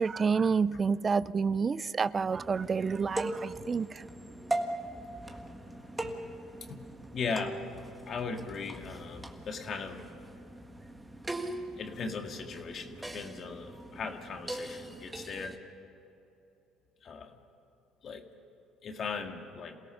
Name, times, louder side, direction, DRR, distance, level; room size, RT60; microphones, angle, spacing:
voice 1, 0.0-4.0, right 5 dB, 30° right, 18 dB, 0.4 m, -29 dB
sound 1, 2.3-15.6, right 1 dB, 10° right, 1.7 m, -40 dB
voice 2, 7.1-7.6 8.1-10.1 11.8-15.6 17.0-17.4 18.0-18.2 18.8-19.8, left 5 dB, 45° left, 4 dB, 2.0 m, -38 dB
27.5 x 17.5 x 5.7 m, 2.9 s
cardioid pair, 110°, 0 cm